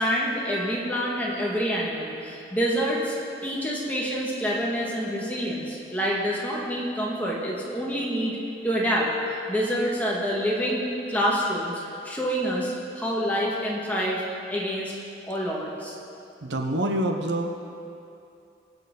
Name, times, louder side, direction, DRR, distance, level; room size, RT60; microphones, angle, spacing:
voice 1, 0.0-3.2 3.4-8.4 8.6-11.7 12.0-14.2 14.5-14.9 15.3-16.0, equal, 10° left, -5 dB, 1.8 m, -27 dB
voice 2, 16.4-17.6, right 1 dB, 70° right, 4 dB, 0.9 m, -26 dB
22.0 x 8.1 x 3.9 m, 2.6 s
head